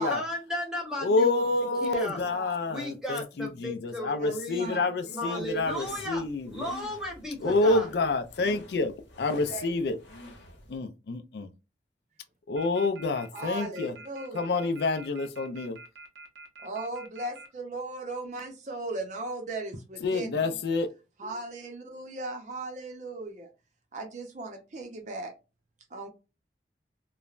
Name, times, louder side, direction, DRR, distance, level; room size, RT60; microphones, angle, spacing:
voice 1, 0.1-1.4 1.8-2.2 2.7-4.8 5.1-6.2 6.5-7.9, left 1 dB, 5° right, 0.9 m, -34 dB
voice 2, 1.0-6.7 7.4-8.9 9.2-10.0 10.7-11.5 12.5-13.9 14.3-15.8 20.0-20.9, left 3 dB, 65° left, 0.4 m, -28 dB
voice 3, 1.8-2.6 4.2-5.4 9.3-9.7 13.3-14.4 16.6-20.6 21.2-23.5 23.9-25.3 25.9-26.1, right 2 dB, 40° right, 0.6 m, -37 dB
sound 1, 5.4-10.8, left 1 dB, 85° left, 0.9 m, -49 dB
sound 2, 12.6-17.5, right 3 dB, 85° right, 0.6 m, -46 dB
3.1 x 2.1 x 2.4 m
head